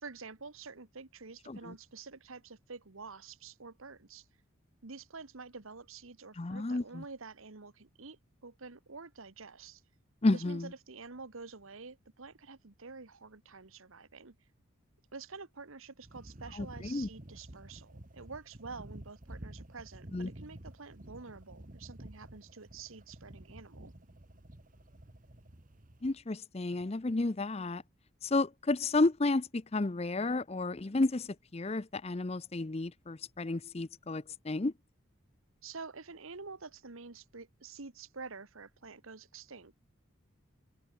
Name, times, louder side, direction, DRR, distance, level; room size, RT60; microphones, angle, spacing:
voice 1, 0.0-4.3 4.8-9.8 10.3-14.3 15.1-23.9 35.6-39.7, right 4 dB, 75° right, 1.3 m, -48 dB
voice 2, 6.4-7.0 10.2-10.7 16.6-17.1 20.1-20.3 26.0-27.8 28.2-34.7, left 2 dB, 30° left, 0.6 m, -32 dB
sound 1, 16.0-26.2, right 1 dB, 40° right, 1.7 m, -51 dB
head